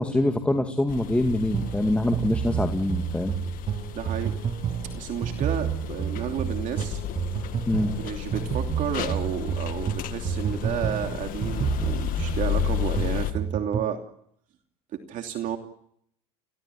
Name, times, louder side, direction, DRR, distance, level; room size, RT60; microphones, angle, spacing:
voice 1, 0.0-3.3 7.7-7.9, left 1 dB, 5° left, 3 dB, 2.3 m, -24 dB
sound 1, 0.9-13.3, left 12 dB, 50° left, 1.8 m, -33 dB
sound 2, 1.5-14.0, right 9 dB, 30° right, 1.0 m, -30 dB
voice 2, 3.9-4.4 4.9-7.0 8.0-14.0 14.9-15.6, right 9 dB, 45° right, 4 dB, 2.9 m, -31 dB
30.0 x 17.0 x 9.9 m, 0.71 s
supercardioid pair, 100°, 18 cm